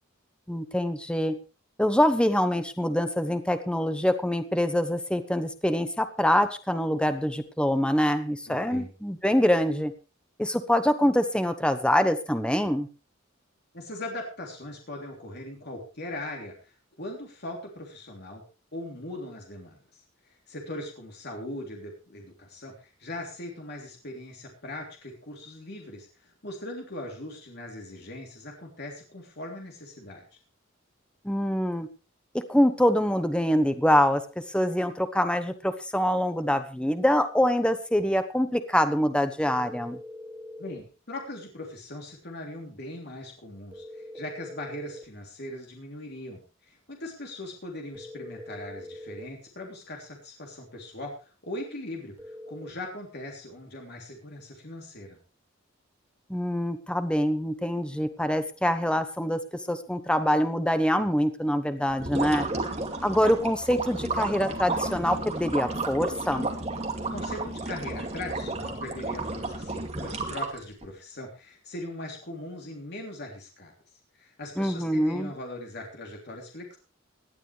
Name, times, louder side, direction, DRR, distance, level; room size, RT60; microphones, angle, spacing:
voice 1, 0.5-1.4 1.8-9.9 10.4-12.9 31.2-31.9 32.5-40.0 56.3-62.5 63.0-66.5 74.6-75.3, equal, 5° left, 9 dB, 1.0 m, -25 dB
voice 2, 8.5-8.9 13.7-18.4 18.7-30.2 40.6-55.2 67.1-73.7 74.1-76.8, left 1 dB, 55° left, 0 dB, 3.3 m, -40 dB
sound 1, 39.5-40.9 43.7-45.1 47.9-49.4 52.2-52.7, left 1 dB, 10° right, 1.4 m, -43 dB
sound 2, 61.9-70.9, right 2 dB, 30° right, 2.4 m, -32 dB
18.0 x 12.0 x 3.4 m, 0.33 s
head